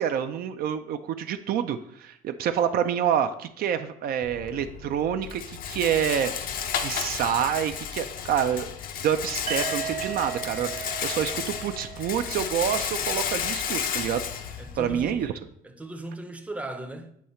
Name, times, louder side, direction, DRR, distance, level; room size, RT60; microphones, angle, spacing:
voice 1, 0.0-6.3 6.8-8.7 9.0-14.3 14.8-15.3, right 9 dB, 60° right, 0.4 m, -27 dB
Rattle, 4.2-15.3, left 8 dB, 55° left, 0.5 m, -33 dB
sound 1, 9.5-13.3, right 8 dB, 45° right, 0.9 m, -37 dB
voice 2, 14.6-15.3 15.6-17.1, right 2 dB, 10° right, 0.6 m, -37 dB
8.2 x 2.8 x 4.3 m
cardioid pair, 110°, 17 cm